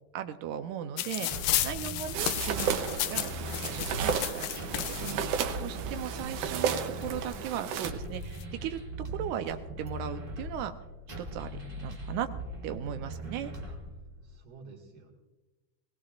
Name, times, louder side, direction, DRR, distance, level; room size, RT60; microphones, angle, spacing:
voice 1, 0.1-2.8 3.1-3.3 3.6-10.7 11.2-12.3 12.6-13.5, right 10 dB, 90° right, 7 dB, 2.2 m, -37 dB
sound 1, 1.0-5.1 6.0-6.1 6.4-7.3 8.1-8.4, left 13 dB, 80° left, 1.8 m, -33 dB
sound 2, 1.3-14.3, equal, 50° right, 0.6 m, -40 dB
voice 2, 1.6-2.0 13.7-13.8 14.2-15.1, right 3 dB, 35° right, 0 dB, 2.3 m, -51 dB
sound 3, 2.1-7.9, right 7 dB, 70° right, 1.6 m, -33 dB
19.5 x 19.0 x 2.5 m, 1.1 s
omnidirectional pair, 3.4 m